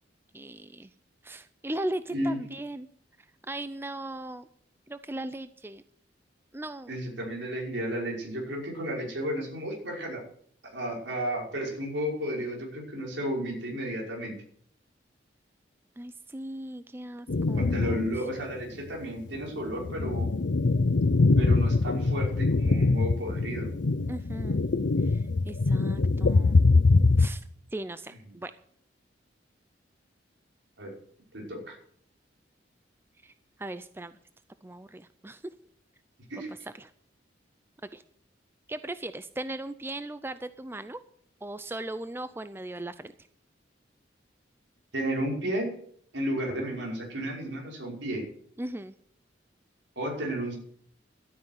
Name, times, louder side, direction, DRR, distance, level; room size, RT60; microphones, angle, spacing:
voice 1, 0.3-0.9 1.2-2.9 3.4-4.5 4.9-5.8 6.5-7.0 16.0-18.0 24.1-24.6 25.0-26.6 27.2-27.4 27.7-28.5 33.2-33.3 33.6-34.1 34.6-35.5 36.5-36.9 37.9-38.0 38.7-41.0 41.4-43.1 48.6-48.9, right 1 dB, 10° right, 12 dB, 0.4 m, -38 dB
voice 2, 6.9-10.2 10.6-14.3 17.6-20.3 21.4-23.7 30.8-30.9 31.3-31.8 36.3-36.5 44.9-45.7 46.1-48.2 50.0-50.6, right 1 dB, 75° right, -1 dB, 5.5 m, -33 dB
sound 1, 17.3-18.2 18.6-18.7 19.4-27.3, left 3 dB, 70° left, 0.6 m, -23 dB
12.5 x 9.4 x 8.1 m, 0.64 s
head